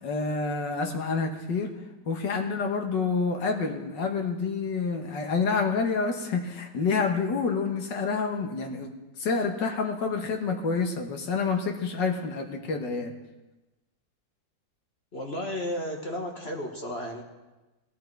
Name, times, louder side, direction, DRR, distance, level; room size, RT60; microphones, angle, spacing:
voice 1, 0.0-1.7 2.1-8.9 9.2-13.1, left 4 dB, 70° left, 3 dB, 2.0 m, -28 dB
voice 2, 15.1-17.2, equal, 35° left, 1 dB, 1.5 m, -33 dB
17.0 x 11.5 x 4.6 m, 1.1 s
omnidirectional pair, 2.0 m